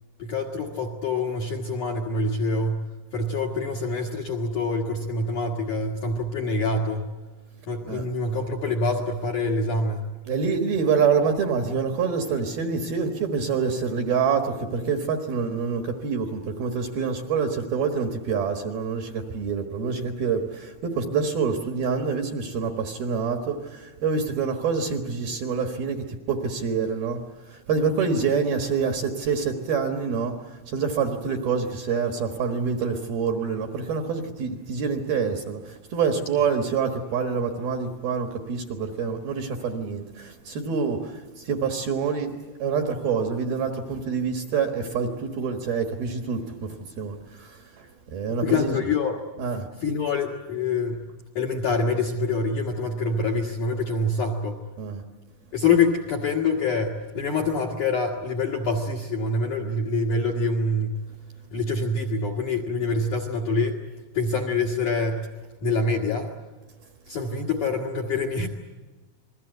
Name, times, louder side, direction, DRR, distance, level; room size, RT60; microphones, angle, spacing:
voice 1, 0.2-7.1 7.7-10.1 48.3-49.2 49.8-51.0 51.4-54.6 55.5-61.0 61.5-63.8 64.1-65.3 65.6-66.3 67.1-68.5, left 3 dB, 60° left, 7 dB, 2.2 m, -26 dB
voice 2, 10.3-27.2 27.5-30.4 30.7-41.1 41.5-47.8 48.1-48.7 49.4-49.7 54.8-55.0, right 5 dB, 65° right, 5 dB, 2.7 m, -26 dB
29.0 x 21.5 x 8.0 m, 1.2 s
omnidirectional pair, 5.9 m